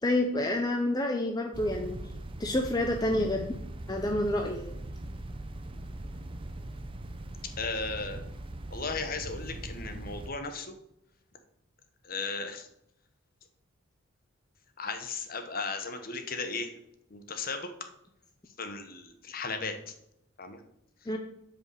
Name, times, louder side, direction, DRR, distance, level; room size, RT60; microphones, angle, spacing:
voice 1, 0.0-2.0 2.4-3.6 3.9-4.7 21.1-21.2, left 1 dB, 20° left, 2 dB, 0.7 m, -28 dB
sound 1, 1.5-10.3, right 1 dB, 25° right, 0.6 m, -41 dB
voice 2, 7.6-8.2 8.7-10.8 12.0-12.7 14.8-16.7 17.1-17.7 18.6-19.9 20.4-20.6 21.0-21.1, left 4 dB, 40° left, 7 dB, 1.1 m, -36 dB
8.3 x 5.1 x 6.8 m, 0.79 s
head